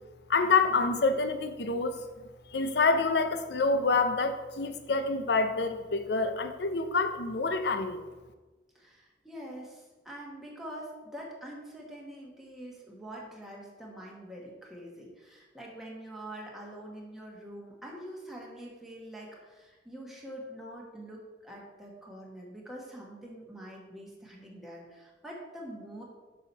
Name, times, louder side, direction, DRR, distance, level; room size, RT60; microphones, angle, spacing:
voice 1, 0.3-2.0 2.5-8.0, left 4 dB, 65° left, 8 dB, 0.6 m, -27 dB
voice 2, 8.7-26.0, right 1 dB, ahead, -3 dB, 1.2 m, -45 dB
6.1 x 5.6 x 4.1 m, 1.2 s
head